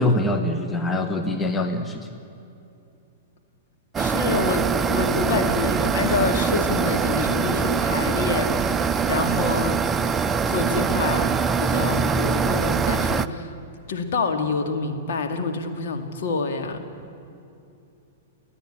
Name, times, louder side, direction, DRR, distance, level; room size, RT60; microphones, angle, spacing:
voice 1, 0.0-2.1, left 1 dB, 15° left, 6 dB, 1.2 m, -24 dB
sound 1, 3.9-13.3, right 5 dB, 15° right, 0.5 m, -23 dB
voice 2, 4.0-9.8 10.0-10.1 10.5-13.5 13.9-16.9, left 4 dB, 55° left, 5 dB, 2.1 m, -27 dB
29.5 x 10.0 x 9.9 m, 2.7 s
figure-of-eight pair, 105°, 0 cm